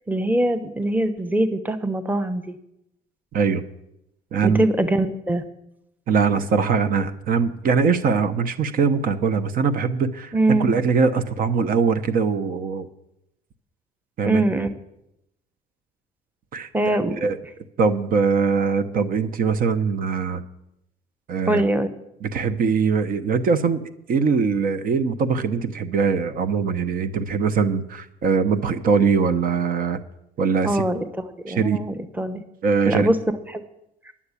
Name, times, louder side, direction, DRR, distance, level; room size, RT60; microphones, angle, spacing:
voice 1, 0.1-2.6 4.4-5.4 10.3-10.7 14.3-14.7 16.7-17.3 21.5-21.9 30.6-32.4 32.9-33.2 33.5-33.6, right 1 dB, 10° right, 10 dB, 1.0 m, -22 dB
voice 2, 4.3-4.6 6.1-10.3 10.6-12.9 14.2-14.4 16.5-17.4 17.8-20.4 21.3-21.6 22.2-30.0 30.4-30.8 31.5-31.8 32.6-33.1, right 5 dB, 55° right, 12 dB, 0.9 m, -22 dB
11.0 x 7.3 x 8.2 m, 0.82 s
cardioid pair, 110°, 17 cm